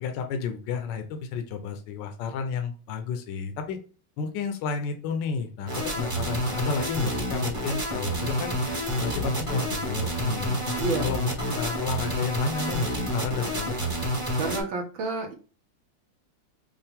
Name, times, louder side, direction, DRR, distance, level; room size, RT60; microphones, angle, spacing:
voice 1, 0.0-3.8 4.2-8.6 9.0-13.9, left 5 dB, 70° left, 6 dB, 1.3 m, -32 dB
sound 1, 5.7-14.6, equal, 20° right, 1.0 m, -29 dB
voice 2, 10.8-11.1 14.4-15.3, right 3 dB, 75° right, 3 dB, 1.9 m, -29 dB
5.5 x 2.4 x 3.5 m, 0.36 s
omnidirectional pair, 2.1 m